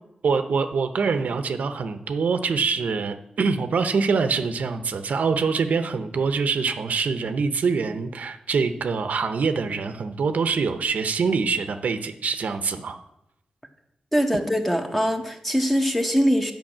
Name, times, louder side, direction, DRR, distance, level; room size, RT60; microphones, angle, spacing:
voice 1, 0.2-13.0, right 5 dB, 75° right, 9 dB, 0.7 m, -24 dB
voice 2, 14.1-16.5, equal, 5° left, 4 dB, 1.2 m, -22 dB
9.0 x 5.2 x 7.3 m, 0.84 s
wide cardioid pair, 90°, 3 cm